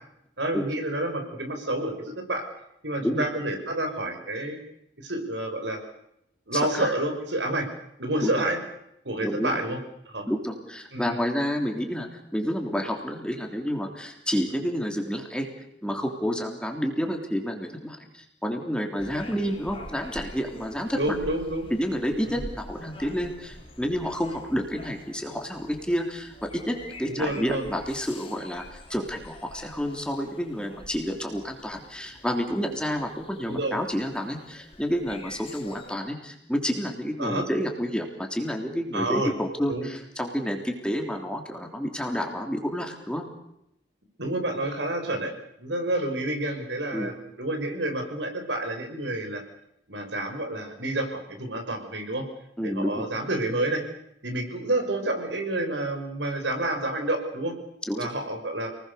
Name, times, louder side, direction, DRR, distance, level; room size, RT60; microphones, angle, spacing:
voice 1, 0.4-2.4 2.8-4.6 5.0-5.8 6.5-7.7 8.0-8.6 9.0-9.8 10.1-10.3 10.9-11.2 20.9-21.7 22.2-22.4 27.1-27.6 33.5-33.8 37.2-37.5 38.9-39.3 39.7-39.9 44.2-45.3 45.6-49.4 49.9-52.2 52.6-53.8 54.2-57.5 58.0-58.7, right 1 dB, 80° right, 5 dB, 5.7 m, -29 dB
voice 2, 6.5-6.9 8.2-8.3 9.2-9.6 10.3-15.5 15.8-21.1 21.8-43.2 46.9-47.1 52.6-53.1 57.9-58.1, equal, 5° left, 3 dB, 3.4 m, -29 dB
sound 1, 19.0-35.9, left 1 dB, 30° left, 3.2 m, -46 dB
29.0 x 20.0 x 6.9 m, 0.79 s
head